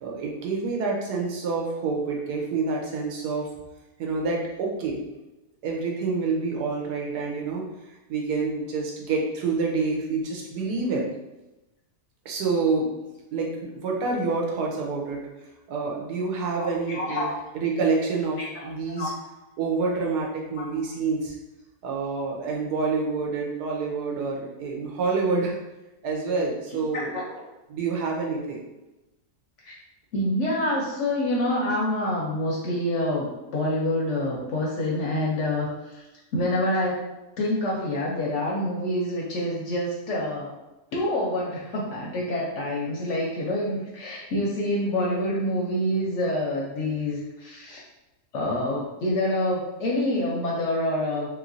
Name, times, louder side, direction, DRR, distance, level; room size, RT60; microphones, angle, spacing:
voice 1, 0.0-3.5 4.0-5.0 5.6-7.6 8.1-11.1 12.2-12.9 13.3-15.2 15.7-19.1 19.6-21.3 21.8-25.6 26.0-27.1 27.7-28.6, right 4 dB, 80° right, -1 dB, 1.3 m, -27 dB
voice 2, 16.6-17.4 18.4-19.1 20.6-20.7 26.7-27.2 29.7-29.8 30.1-35.7 36.3-37.0 37.4-40.5 40.9-47.8 48.3-51.3, left 1 dB, 65° left, -3 dB, 0.8 m, -27 dB
3.1 x 3.1 x 2.5 m, 0.99 s
omnidirectional pair, 1.7 m